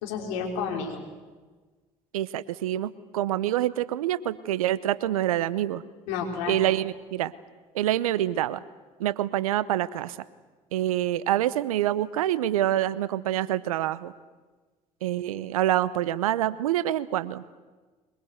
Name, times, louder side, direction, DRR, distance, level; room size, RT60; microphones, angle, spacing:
voice 1, 0.0-1.0 6.1-6.6, left 6 dB, 75° left, 2 dB, 4.2 m, -31 dB
voice 2, 2.1-5.8 6.5-7.3 7.7-8.6 9.0-10.2 10.7-14.1 15.0-17.6, right 13 dB, 85° right, 18 dB, 0.8 m, -26 dB
23.5 x 22.0 x 8.0 m, 1.4 s
hypercardioid pair, 60°, 18 cm